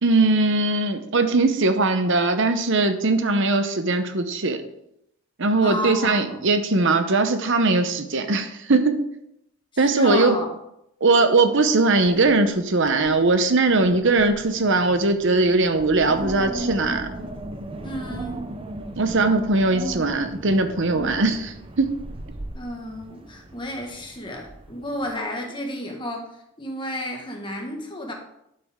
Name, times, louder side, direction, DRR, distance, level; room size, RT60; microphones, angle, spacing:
voice 1, 0.0-4.6 5.4-9.0 9.8-10.4 11.0-17.1 19.0-21.9, right 3 dB, 55° right, 9 dB, 0.8 m, -20 dB
voice 2, 5.6-6.4 9.7-10.5 17.8-18.4 22.5-26.3 26.6-28.1, left 1 dB, 20° left, 1 dB, 1.7 m, -32 dB
Wind, 12.0-12.5 12.8-13.3 13.7-25.2, right 1 dB, 25° right, 0.7 m, -36 dB
12.0 x 7.8 x 3.7 m, 0.79 s
head